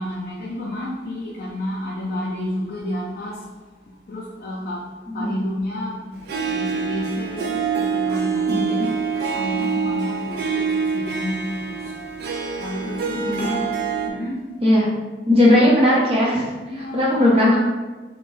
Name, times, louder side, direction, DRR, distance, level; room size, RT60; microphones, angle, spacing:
voice 1, 0.0-3.4 3.9-4.9 5.1-6.0 6.4-9.0 9.3-11.9 12.6-13.6 14.1-14.4 16.6-17.3, left 1 dB, 50° left, -6 dB, 0.4 m, -30 dB
voice 2, 5.1-5.4 8.5-8.9 13.2-13.5 14.6-14.9 15.3-17.6, left 1 dB, 35° right, -5 dB, 0.7 m, -18 dB
Harp, 6.3-14.1, right 5 dB, 60° right, 0.3 m, -25 dB
2.6 x 2.1 x 3.2 m, 1.3 s
head